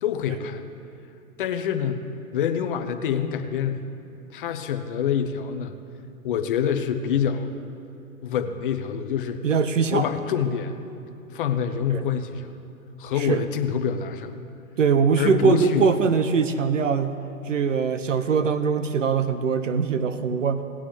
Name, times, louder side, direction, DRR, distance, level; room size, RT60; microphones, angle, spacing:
voice 1, 0.0-0.7 1.4-2.0 2.3-3.8 4.3-5.7 6.2-7.5 8.2-9.4 9.9-10.7 11.3-12.5 13.0-14.3 15.2-15.9, left 8 dB, 40° left, 8 dB, 0.8 m, -26 dB
voice 2, 9.4-10.0 11.9-12.0 13.2-13.4 14.8-17.2 17.5-20.6, right 6 dB, 65° right, 10 dB, 0.7 m, -22 dB
17.5 x 9.7 x 3.3 m, 2.7 s
figure-of-eight pair, 115°, 42 cm